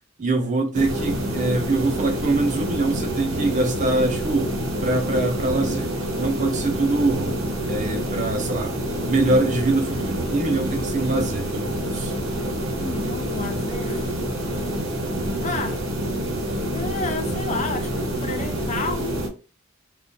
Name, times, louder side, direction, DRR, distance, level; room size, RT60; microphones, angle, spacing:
voice 1, 0.2-4.5 4.8-7.4 7.7-8.8 9.1-12.2, right 2 dB, 35° right, 0.5 m, -24 dB
sound 1, 0.7-19.3, right 1 dB, 75° right, 0.9 m, -27 dB
voice 2, 12.8-14.1 15.4-15.8 16.7-19.2, left 3 dB, 35° left, 0.4 m, -31 dB
2.4 x 2.1 x 2.5 m
head